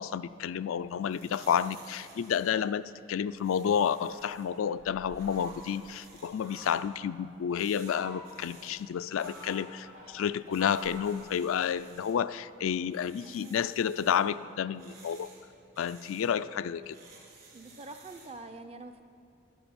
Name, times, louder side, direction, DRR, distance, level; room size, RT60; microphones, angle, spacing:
voice 1, 0.0-15.3 15.8-17.0, left 8 dB, 80° left, 14 dB, 0.3 m, -30 dB
sound 1, 0.8-18.4, right 3 dB, 45° right, 2.5 m, -56 dB
Fowl, 3.9-5.9 6.4-7.0 7.6-8.6 9.0-11.8, right 1 dB, 90° right, 4.2 m, -49 dB
voice 2, 13.2-13.6 17.5-19.0, right 2 dB, 30° right, 8 dB, 0.6 m, -45 dB
11.0 x 11.0 x 7.1 m, 2.5 s
head